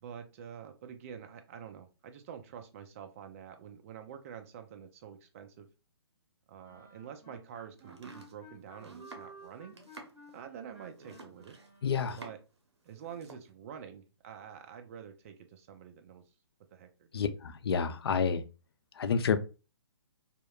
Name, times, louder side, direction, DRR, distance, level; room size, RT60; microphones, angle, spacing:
voice 1, 0.0-5.7 6.5-9.8 10.3-11.6 12.1-12.4 12.8-16.2 16.7-17.3, right 8 dB, 30° right, 0.4 m, -47 dB
sound 1, 6.6-12.3, equal, 15° right, 1.0 m, -55 dB
Domestic sounds home sounds, 7.8-12.6 12.9-13.5, right 3 dB, 75° right, 0.7 m, -52 dB
voice 2, 11.8-12.2 17.1-18.4 19.0-19.4, left 6 dB, 65° left, 0.4 m, -29 dB
2.8 x 2.1 x 2.2 m
figure-of-eight pair, 135°, 14 cm